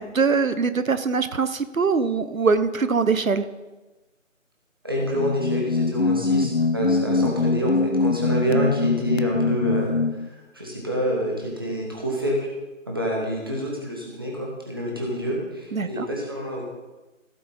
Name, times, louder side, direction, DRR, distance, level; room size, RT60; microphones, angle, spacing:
voice 1, 0.0-3.4 15.7-16.1, right 5 dB, 85° right, 12 dB, 0.9 m, -22 dB
voice 2, 4.8-9.9 10.5-12.5 12.9-16.6, equal, 15° right, -3 dB, 1.5 m, -27 dB
sound 1, 5.0-10.3, left 3 dB, 55° left, 0.4 m, -23 dB
15.5 x 8.4 x 4.2 m, 1.1 s
figure-of-eight pair, 170°, 40 cm